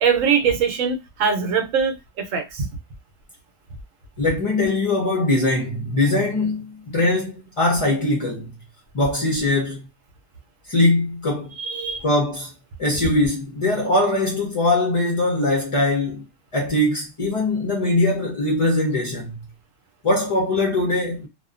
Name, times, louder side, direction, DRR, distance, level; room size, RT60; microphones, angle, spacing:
voice 1, 0.0-2.7 11.6-12.0, right 6 dB, 85° right, 1.0 m, -22 dB
voice 2, 4.2-8.5 8.9-9.8 10.7-11.5 12.0-12.5 12.8-16.2 16.5-19.4 20.0-21.3, left 2 dB, 40° left, 0.4 m, -21 dB
2.6 x 2.1 x 2.4 m
omnidirectional pair, 1.3 m